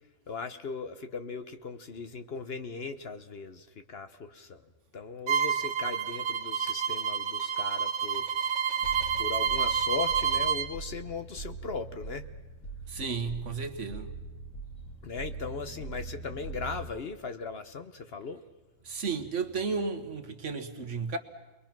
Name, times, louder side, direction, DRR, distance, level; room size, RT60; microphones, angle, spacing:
voice 1, 0.3-4.6 4.9-8.2 9.2-12.2 15.0-18.4, left 4 dB, 50° left, 9 dB, 1.1 m, -38 dB
Bowed string instrument, 5.3-10.7, right 7 dB, 85° right, 2.1 m, -29 dB
sound 1, 8.8-16.9, right 3 dB, 70° left, 2.4 m, -42 dB
voice 2, 12.9-14.1 18.9-21.2, right 4 dB, 60° right, 8 dB, 1.8 m, -33 dB
29.5 x 22.0 x 6.0 m, 1.1 s
omnidirectional pair, 1.4 m